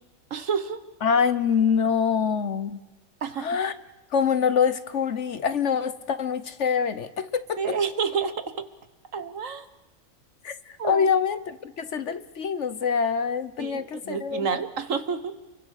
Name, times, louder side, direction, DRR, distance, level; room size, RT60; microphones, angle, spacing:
voice 1, 0.3-0.8 3.2-3.5 7.6-8.7 9.1-9.6 10.8-11.1 13.6-15.4, right 6 dB, 65° right, 11 dB, 1.8 m, -29 dB
voice 2, 1.0-2.8 3.4-3.7 4.1-7.8 10.4-14.5, left 6 dB, 60° left, 13 dB, 1.3 m, -25 dB
29.5 x 23.0 x 6.5 m, 1.2 s
omnidirectional pair, 1.4 m